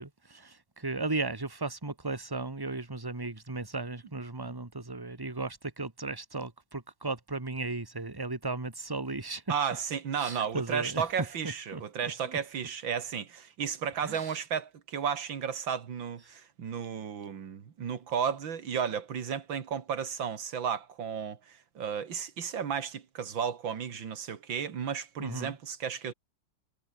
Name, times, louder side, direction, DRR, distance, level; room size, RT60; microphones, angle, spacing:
voice 1, 0.0-9.4 10.2-11.0 11.7-11.8 12.2-12.4 14.0-14.4 16.3-16.4 25.2-25.6, right 3 dB, 10° right, 1.9 m, -36 dB
voice 2, 9.5-26.1, right 7 dB, 80° right, 2.6 m, -33 dB
omnidirectional pair, 2.1 m